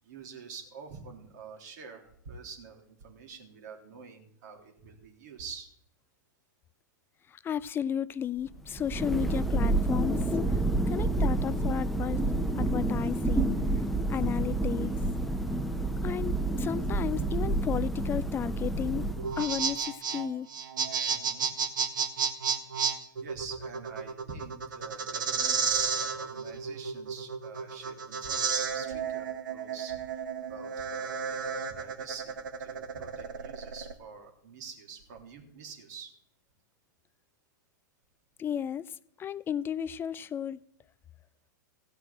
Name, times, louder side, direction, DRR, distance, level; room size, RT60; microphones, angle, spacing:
voice 1, 0.0-5.7 10.8-11.2 21.0-21.5 22.3-22.6 23.2-36.1, right 5 dB, 60° right, 3.4 m, -46 dB
voice 2, 7.3-10.2 10.5-10.6 10.9-12.2 12.6-13.6 14.1-15.0 16.0-19.1 19.4-20.5 38.4-38.9 39.2-40.6, left 9 dB, 20° left, 0.4 m, -33 dB
Thunder, 8.6-19.6, right 2 dB, ahead, 0.9 m, -29 dB
sound 1, 19.2-33.9, right 6 dB, 75° right, 1.6 m, -32 dB
16.0 x 5.8 x 8.7 m
hypercardioid pair, 110°, 11 cm